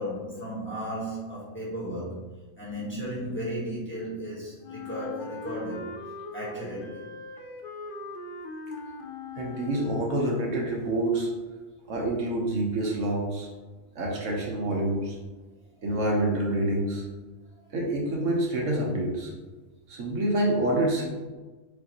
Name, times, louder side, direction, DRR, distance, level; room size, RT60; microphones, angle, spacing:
voice 1, 0.0-2.3 2.6-5.9 6.3-7.1 15.8-15.9, equal, 10° left, -7 dB, 1.2 m, -35 dB
Wind instrument woodwind instrument, 4.6-10.4, left 3 dB, 60° left, 0.6 m, -40 dB
voice 2, 9.4-11.3 11.9-13.5 13.9-15.1 15.8-17.0 17.7-19.3 19.9-21.1, right 1 dB, 70° right, -1 dB, 1.2 m, -27 dB
6.7 x 2.6 x 2.8 m, 1.3 s
omnidirectional pair, 1.4 m